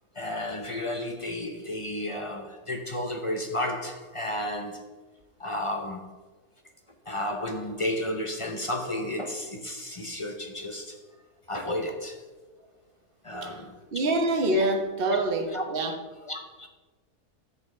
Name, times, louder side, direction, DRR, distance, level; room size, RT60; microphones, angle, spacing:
voice 1, 0.1-4.8 5.4-6.1 7.1-11.0 11.5-12.3 13.2-13.8 14.5-14.6 15.5-15.6 16.3-16.7, left 1 dB, 35° left, 3 dB, 0.5 m, -32 dB
voice 2, 13.9-15.9, right 1 dB, 40° right, 3 dB, 1.3 m, -25 dB
11.0 x 8.2 x 3.2 m, 1.3 s
omnidirectional pair, 1.6 m